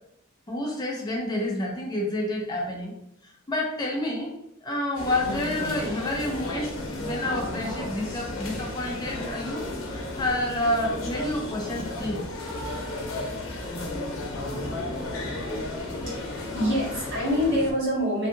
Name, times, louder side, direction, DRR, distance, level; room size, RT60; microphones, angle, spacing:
voice 1, 0.5-2.9 3.5-9.6 9.9-12.3, left 1 dB, 20° left, -1 dB, 0.4 m, -29 dB
sound 1, 4.9-17.7, left 2 dB, 75° left, 0.6 m, -33 dB
voice 2, 16.1-18.3, equal, 60° right, -5 dB, 1.2 m, -26 dB
2.6 x 2.3 x 2.6 m, 0.77 s
head